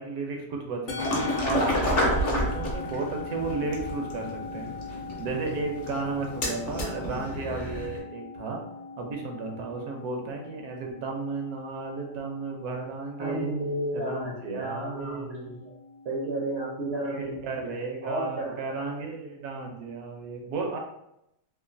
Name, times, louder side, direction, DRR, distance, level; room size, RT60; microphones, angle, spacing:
voice 1, 0.0-4.7 5.2-8.6 9.0-13.5 13.9-15.5 17.0-20.8, right 4 dB, 80° right, 1 dB, 1.1 m, -34 dB
Musical instrument, 0.9-19.4, left 5 dB, 75° left, 1.0 m, -41 dB
sound 1, 1.0-8.0, equal, 50° left, 0.7 m, -30 dB
voice 2, 13.2-15.7 16.0-18.9, right 1 dB, 65° right, -3 dB, 0.7 m, -33 dB
3.0 x 2.3 x 2.5 m, 0.81 s
omnidirectional pair, 1.6 m